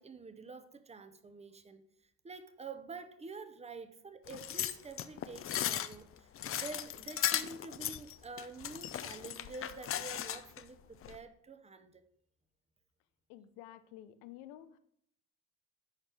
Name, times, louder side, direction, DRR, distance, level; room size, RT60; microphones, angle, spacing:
voice 1, 0.0-1.8 2.2-12.0, right 4 dB, 15° right, 10 dB, 0.7 m, -48 dB
sound 1, 4.3-10.6 11.0-11.2, left 10 dB, 35° left, 0.4 m, -37 dB
voice 2, 13.3-14.8, left 12 dB, 85° left, 13 dB, 0.6 m, -51 dB
10.5 x 4.4 x 3.4 m, 0.70 s
supercardioid pair, 75°, 37 cm